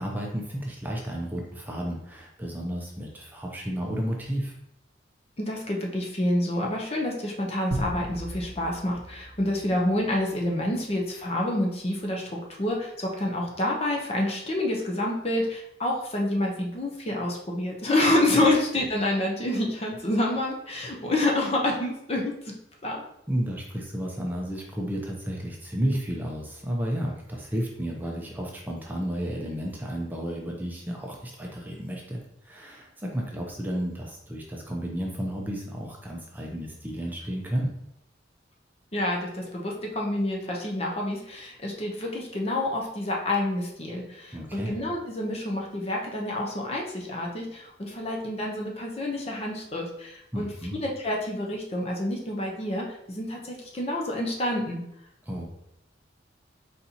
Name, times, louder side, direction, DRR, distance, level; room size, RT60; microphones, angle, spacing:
voice 1, 0.0-4.6 18.3-18.5 23.3-37.7 44.3-44.8 50.3-50.8 55.3-55.4, equal, 10° right, -1 dB, 0.6 m, -32 dB
voice 2, 5.4-22.5 22.8-23.0 38.9-54.8, left 1 dB, 35° left, 0 dB, 0.7 m, -28 dB
sound 1, 7.7-10.5, right 1 dB, 80° right, 0.7 m, -36 dB
4.1 x 4.1 x 2.8 m, 0.77 s
head